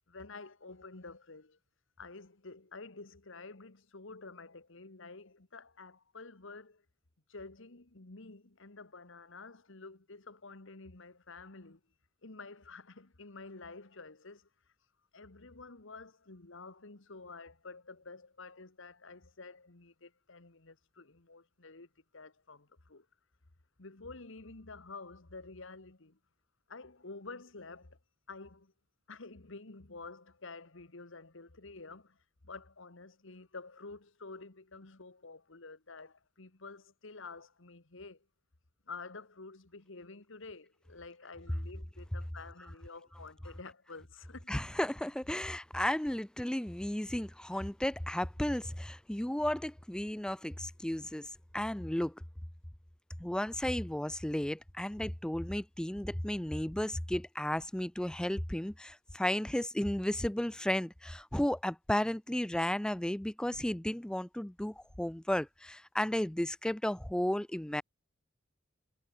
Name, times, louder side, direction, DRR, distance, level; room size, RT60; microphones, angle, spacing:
voice 1, 0.1-1.6 2.0-6.8 7.3-11.8 12.2-14.5 15.1-21.9 22.1-23.1 23.8-26.2 26.7-28.0 28.3-28.7 29.1-32.2 32.4-38.2 38.9-44.5, left 3 dB, 65° left, 1.7 m, -49 dB
voice 2, 44.5-52.2 53.2-67.8, left 1 dB, 5° left, 0.4 m, -34 dB
head